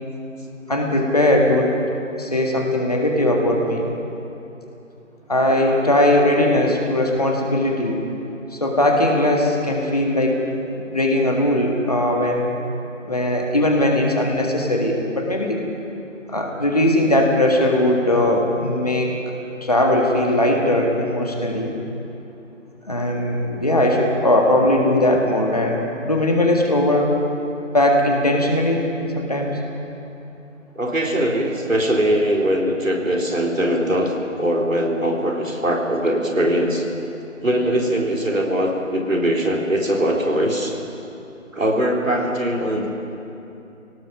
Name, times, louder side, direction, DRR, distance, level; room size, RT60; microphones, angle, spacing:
voice 1, 0.7-1.8 2.2-3.9 5.3-8.0 8.5-10.4 10.7-12.5 13.0-15.6 16.3-19.2 19.6-21.7 22.9-27.1 27.7-28.9 29.1-29.6, left 1 dB, 30° left, 0 dB, 1.8 m, -19 dB
voice 2, 30.8-36.8 37.4-40.7 41.5-42.9, right 1 dB, 75° right, 0 dB, 3.7 m, -21 dB
26.0 x 18.0 x 5.9 m, 2.9 s
figure-of-eight pair, 170°, 40 cm